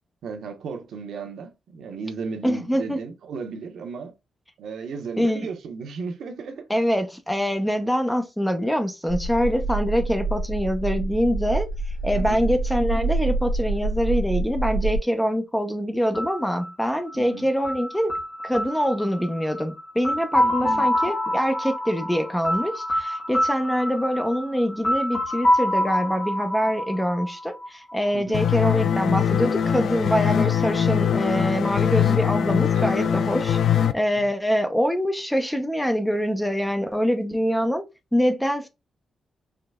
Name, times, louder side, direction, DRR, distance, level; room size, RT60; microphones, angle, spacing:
voice 1, 0.2-4.1 4.6-6.7 12.1-12.4 17.1-17.5 20.3-20.9 28.1-28.4 32.7-33.1 34.2-34.3, right 5 dB, 75° right, 0.9 m, -35 dB
voice 2, 2.4-3.0 5.2-5.5 6.7-11.7 12.0-18.2 18.4-33.6 33.9-37.8 38.1-38.7, equal, 5° left, 0.6 m, -24 dB
sound 1, 9.1-15.0, right 3 dB, 35° right, 0.9 m, -27 dB
sound 2, 16.1-27.9, left 1 dB, 25° left, 1.5 m, -26 dB
sound 3, 28.3-33.9, left 8 dB, 60° left, 0.4 m, -22 dB
4.8 x 3.2 x 2.3 m
wide cardioid pair, 165°, 0 cm